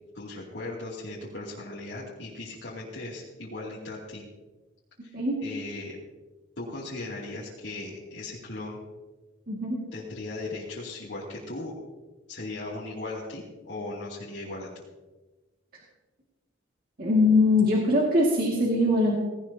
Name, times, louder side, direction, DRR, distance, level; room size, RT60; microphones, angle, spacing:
voice 1, 0.1-4.3 5.0-5.2 5.4-6.0 6.6-8.8 9.9-11.7 12.3-14.7, left 2 dB, 75° left, -7 dB, 2.7 m, -37 dB
voice 2, 9.5-9.8 17.0-19.2, left 2 dB, 50° right, -3 dB, 2.2 m, -22 dB
18.0 x 17.5 x 2.9 m, 1.2 s
head